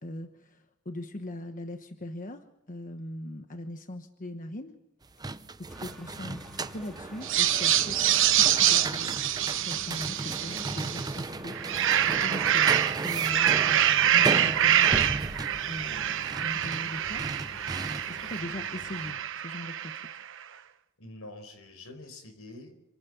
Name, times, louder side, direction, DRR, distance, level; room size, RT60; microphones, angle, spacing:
voice 1, 0.0-4.7 5.6-8.0 8.3-9.3 9.6-11.6 12.2-15.0 15.7-17.2 18.1-19.2 19.4-20.0, left 1 dB, 40° left, 6 dB, 1.2 m, -40 dB
sound 1, 5.0-18.3, right 3 dB, 20° right, 0.6 m, -36 dB
sound 2, 5.7-19.1, equal, ahead, 3.4 m, -48 dB
sound 3, 7.2-11.1 11.5-20.2, right 11 dB, 60° right, 1.0 m, -26 dB
voice 2, 21.0-22.7, left 2 dB, 80° left, 8 dB, 4.6 m, -46 dB
27.0 x 12.5 x 7.6 m, 0.95 s
head